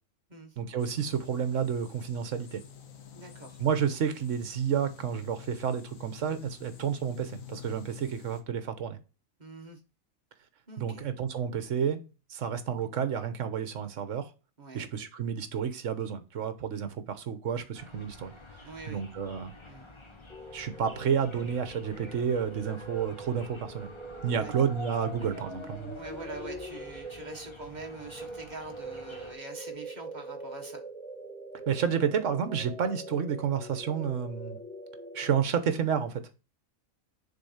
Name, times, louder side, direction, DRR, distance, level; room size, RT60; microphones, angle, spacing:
voice 1, 0.6-2.6 3.6-9.0 10.8-12.0 12.3-14.3 14.7-18.3 18.9-19.5 20.5-23.9 24.2-26.0 31.7-34.6 35.1-36.2, right 7 dB, 65° right, 1.3 m, -30 dB
sound 1, 0.8-8.4, left 10 dB, 75° left, 1.4 m, -49 dB
voice 2, 3.1-3.6 9.4-9.8 10.7-11.1 14.6-14.9 18.6-19.0 19.7-19.9 24.3-24.5 25.9-30.8, right 3 dB, 35° right, 1.4 m, -44 dB
sound 2, 17.7-29.4, left 2 dB, 25° left, 1.0 m, -50 dB
sound 3, 20.3-35.4, right 1 dB, 5° left, 1.5 m, -43 dB
6.8 x 3.9 x 5.6 m
omnidirectional pair, 1.4 m